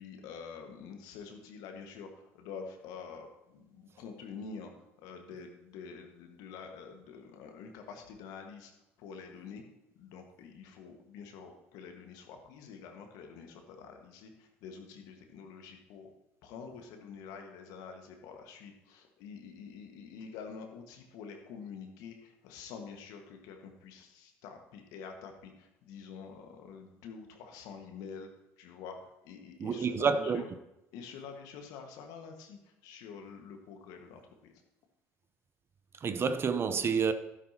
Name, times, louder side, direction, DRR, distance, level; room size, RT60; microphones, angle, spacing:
voice 1, 0.0-4.7 5.0-8.7 9.0-9.6 10.0-16.1 16.4-28.3 28.6-29.0 29.2-30.5 30.9-32.6 32.8-34.5, left 6 dB, 70° left, 1.6 m, -47 dB
voice 2, 29.6-30.4 36.0-37.1, right 5 dB, 40° right, 0.7 m, -28 dB
12.0 x 11.0 x 2.9 m
hypercardioid pair, 65°, 7 cm